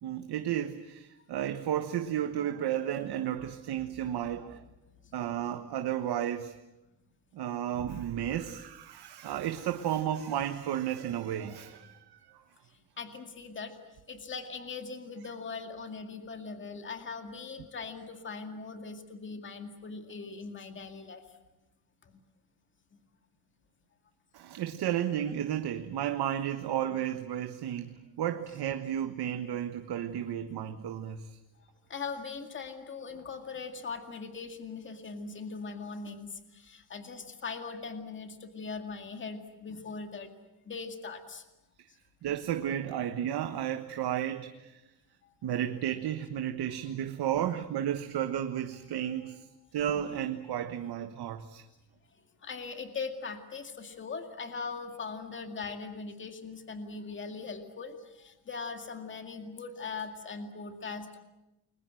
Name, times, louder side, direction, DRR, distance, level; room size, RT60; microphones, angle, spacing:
voice 1, 0.0-4.6 5.1-6.5 7.3-12.4 24.3-31.4 42.2-44.8 45.4-49.5 49.7-51.6, right 10 dB, 85° right, 7 dB, 1.4 m, -33 dB
voice 2, 13.0-13.7 14.1-21.2 31.9-40.3 40.7-41.4 45.2-45.3 47.3-47.5 52.4-61.2, left 4 dB, 30° left, 6 dB, 2.2 m, -40 dB
29.5 x 22.5 x 7.8 m, 0.96 s
wide cardioid pair, 175°, 38 cm